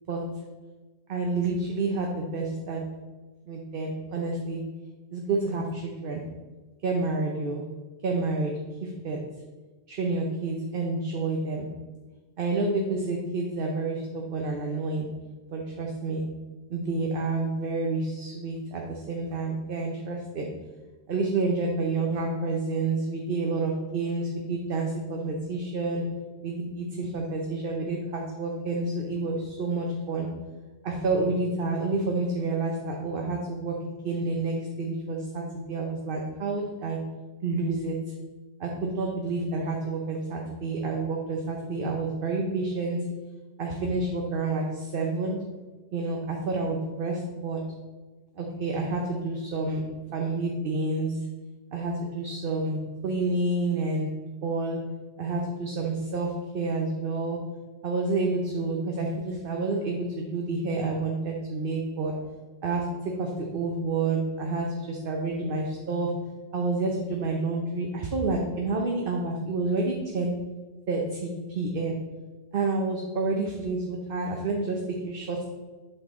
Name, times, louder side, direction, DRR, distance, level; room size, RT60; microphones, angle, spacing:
voice 1, 0.1-0.4 1.1-3.0 3.5-4.7 5.1-6.3 6.8-7.7 8.0-9.3 9.9-11.7 12.4-15.2 15.5-16.2 16.7-20.6 21.1-26.1 26.4-30.3 30.8-37.1 37.4-38.1 38.6-43.1 43.6-45.4 45.9-47.7 48.4-49.8 50.1-51.2 51.7-54.1 54.4-54.9 55.2-57.5 57.8-62.2 62.6-66.2 66.5-70.4 70.9-72.0 72.5-75.4, right 3 dB, 50° right, 0 dB, 1.0 m, -29 dB
7.9 x 6.0 x 3.7 m, 1.3 s
omnidirectional pair, 1.2 m